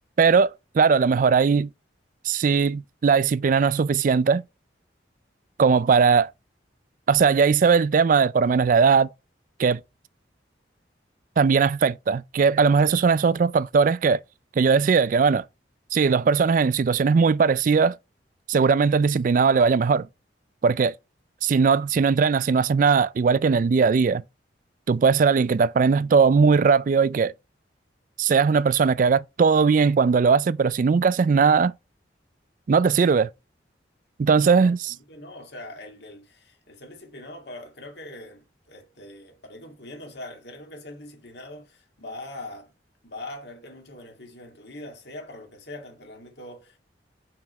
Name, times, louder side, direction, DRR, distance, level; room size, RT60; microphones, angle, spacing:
voice 1, 0.2-1.7 2.2-4.4 5.6-6.3 7.1-9.1 9.6-9.8 11.4-14.2 14.6-15.4 15.9-17.9 18.5-20.1 20.6-20.9 21.4-24.2 24.9-27.3 28.2-31.7 32.7-33.3 34.2-34.9, right 5 dB, 45° right, 0.3 m, -19 dB
voice 2, 34.4-42.7 43.0-46.8, left 1 dB, 65° left, 2.2 m, -42 dB
5.8 x 4.9 x 5.3 m
head